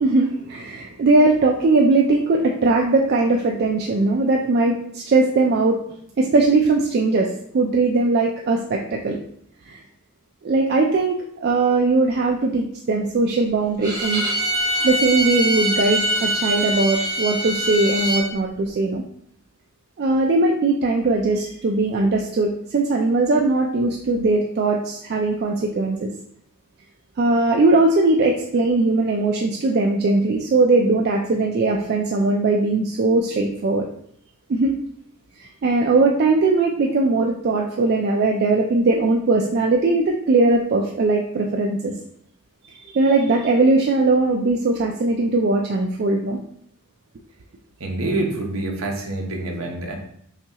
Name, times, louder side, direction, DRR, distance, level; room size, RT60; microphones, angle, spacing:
voice 1, 0.0-5.8 6.2-9.2 9.7-9.8 10.4-14.2 14.7-19.0 20.0-26.1 27.2-33.8 34.5-34.7 35.4-41.9 42.7-46.4, right 3 dB, 45° right, 0 dB, 0.3 m, -20 dB
Bowed string instrument, 13.8-18.3, right 1 dB, 20° right, 0.8 m, -23 dB
voice 2, 47.8-50.0, right 2 dB, 65° right, 1 dB, 0.8 m, -26 dB
5.6 x 2.3 x 2.8 m, 0.68 s
head